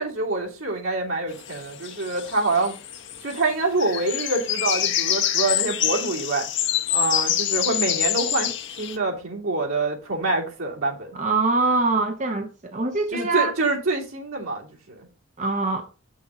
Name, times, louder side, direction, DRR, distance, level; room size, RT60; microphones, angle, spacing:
voice 1, 0.0-2.7 3.2-6.4 6.9-11.1 13.1-15.1, right 3 dB, 85° right, 2.9 m, -26 dB
sound 1, 1.4-3.5 3.8-9.0, left 11 dB, 60° left, 1.1 m, -26 dB
voice 2, 11.1-13.5 15.4-15.9, right 3 dB, 35° right, 0.7 m, -23 dB
8.3 x 6.4 x 4.0 m
head